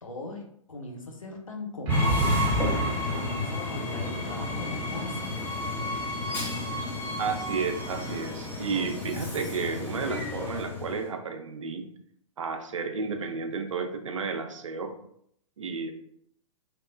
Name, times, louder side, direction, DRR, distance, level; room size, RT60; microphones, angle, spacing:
voice 1, 0.0-5.3, left 2 dB, 85° left, 1 dB, 0.6 m, -39 dB
Train, 1.9-11.1, left 2 dB, 10° left, 0.7 m, -32 dB
sound 1, 1.9-3.9, right 1 dB, 35° right, 0.7 m, -29 dB
voice 2, 7.2-11.9 12.4-14.9 15.6-15.9, right 5 dB, 75° right, 5 dB, 0.5 m, -32 dB
2.9 x 2.1 x 2.5 m, 0.71 s
figure-of-eight pair, 115°, 17 cm